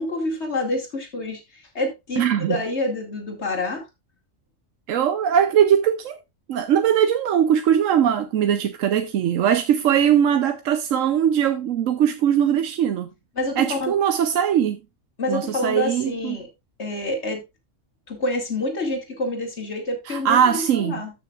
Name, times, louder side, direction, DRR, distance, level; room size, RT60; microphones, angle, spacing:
voice 1, 0.0-3.8 13.4-14.0 15.2-16.5 16.8-17.4 18.1-21.1, left 2 dB, 60° left, 2.6 m, -27 dB
voice 2, 2.2-2.6 4.9-6.2 6.5-13.1 13.6-14.8 15.3-16.4 20.1-21.0, right 9 dB, 80° right, 1.1 m, -20 dB
13.5 x 6.4 x 2.4 m
omnidirectional pair, 1.3 m